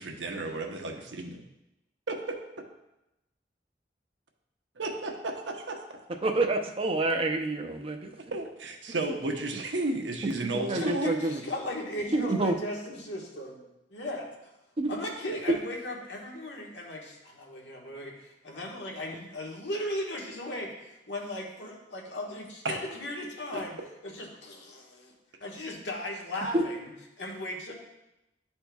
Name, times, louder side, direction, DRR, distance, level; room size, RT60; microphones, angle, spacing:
voice 1, 0.0-1.4 2.1-2.3 4.8-5.8 8.2-11.1 22.6-22.7 23.5-23.6, right 2 dB, 80° right, 2 dB, 0.9 m, -33 dB
voice 2, 6.2-8.1 10.7-11.4 12.1-12.5 14.8-14.9 26.5-26.6, right 2 dB, 30° right, 4 dB, 0.5 m, -27 dB
voice 3, 10.7-13.6 13.9-14.2 14.9-23.8 24.0-25.1 25.4-26.9 27.2-27.7, left 1 dB, 90° left, -1 dB, 1.4 m, -37 dB
11.0 x 4.3 x 2.3 m, 0.93 s
head